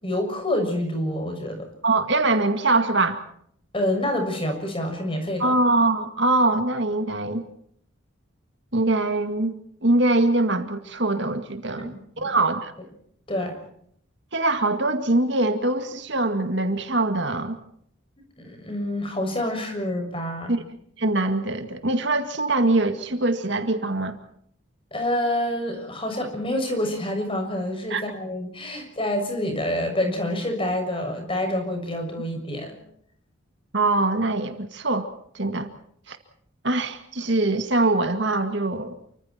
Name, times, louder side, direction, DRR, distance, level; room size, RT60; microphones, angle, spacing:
voice 1, 0.0-1.7 3.7-5.6 11.9-12.2 13.3-13.6 18.4-20.6 24.9-32.8, left 1 dB, 25° left, 6.6 m, -27 dB
voice 2, 1.8-3.2 5.4-7.4 8.7-9.6 9.8-12.7 14.3-17.6 20.5-20.6 21.0-24.2 27.9-28.0 33.7-35.1 35.3-35.7 36.1-36.2 36.6-39.0, right 2 dB, 60° right, 2.1 m, -23 dB
29.5 x 25.0 x 4.5 m
head